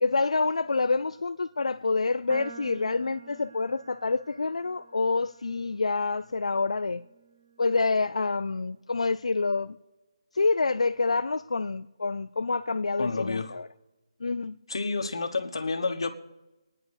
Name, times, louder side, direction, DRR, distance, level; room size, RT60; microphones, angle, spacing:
voice 1, 0.0-7.0 7.6-9.8 10.3-13.7 14.2-14.6, left 3 dB, 85° left, 0.4 m, -27 dB
sound 1, 2.3-8.6, right 4 dB, 30° right, 0.8 m, -49 dB
voice 2, 13.0-13.5 14.7-16.1, left 3 dB, 55° left, 1.3 m, -29 dB
25.0 x 9.8 x 4.8 m
hypercardioid pair, 175°, 3 cm